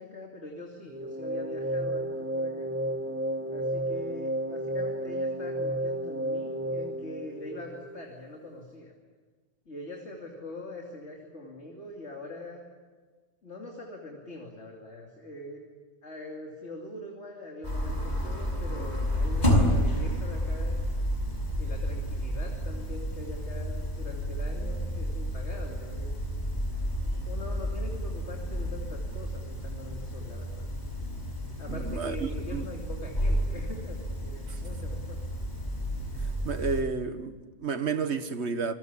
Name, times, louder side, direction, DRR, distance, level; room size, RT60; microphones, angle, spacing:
voice 1, 0.0-2.8 3.5-8.9 9.7-12.6 13.4-15.6 16.0-20.8 21.6-26.2 27.2-30.7 31.6-35.2, left 2 dB, 80° left, 3.2 m, -43 dB
sound 1, 0.9-8.1, right 1 dB, 10° right, 0.9 m, -32 dB
sound 2, 17.6-36.8, equal, 40° left, 5.1 m, -31 dB
voice 2, 31.7-32.7 34.5-34.6 36.2-38.7, right 5 dB, 75° right, 1.7 m, -32 dB
28.5 x 21.0 x 8.5 m
omnidirectional pair, 1.2 m